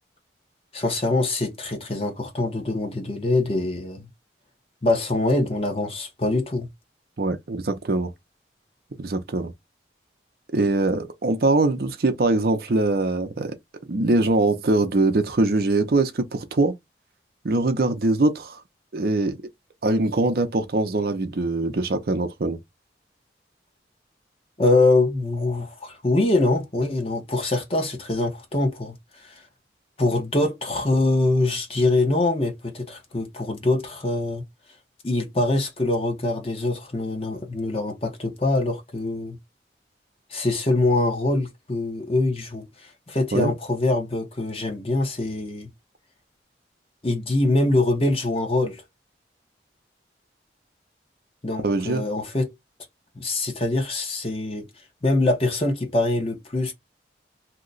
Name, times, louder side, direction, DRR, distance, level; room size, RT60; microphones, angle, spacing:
voice 1, 0.7-4.1 4.8-6.7 24.6-29.4 30.0-34.4 35.0-39.4 40.3-45.7 47.0-48.8 51.4-52.5 53.1-54.7 55.0-56.7, left 2 dB, 35° left, 0.9 m, -24 dB
voice 2, 7.2-8.1 9.0-9.5 10.5-13.6 13.9-16.7 17.4-18.6 18.9-19.4 19.8-22.6 43.3-43.5 51.6-52.0, right 2 dB, 55° right, 0.6 m, -22 dB
2.8 x 2.2 x 3.8 m
head